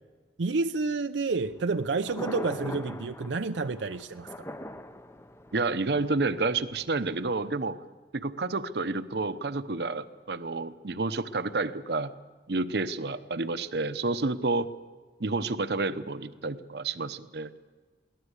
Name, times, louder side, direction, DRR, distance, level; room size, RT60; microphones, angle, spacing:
voice 1, 0.4-4.3, right 3 dB, 90° right, 0.6 m, -29 dB
Thunder, 1.3-7.3, left 1 dB, 15° left, 0.6 m, -42 dB
voice 2, 5.5-7.8 8.1-12.1 12.5-14.7 15.2-17.5, right 3 dB, 65° right, 0.8 m, -30 dB
22.5 x 17.0 x 8.2 m
head